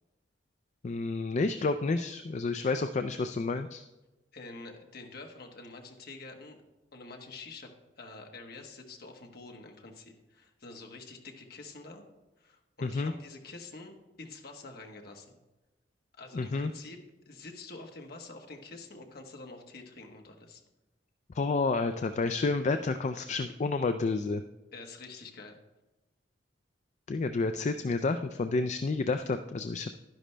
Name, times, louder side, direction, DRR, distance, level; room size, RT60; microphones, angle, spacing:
voice 1, 0.8-3.8 12.8-13.1 16.3-16.7 21.3-24.4 27.1-29.9, left 3 dB, 40° left, 9 dB, 0.4 m, -30 dB
voice 2, 4.3-6.6 6.9-7.7 8.0-12.0 12.4-13.9 14.2-15.3 16.2-17.0 17.3-20.6 24.7-25.6, left 3 dB, 55° left, 3 dB, 1.3 m, -47 dB
11.5 x 10.5 x 3.3 m, 1.1 s
head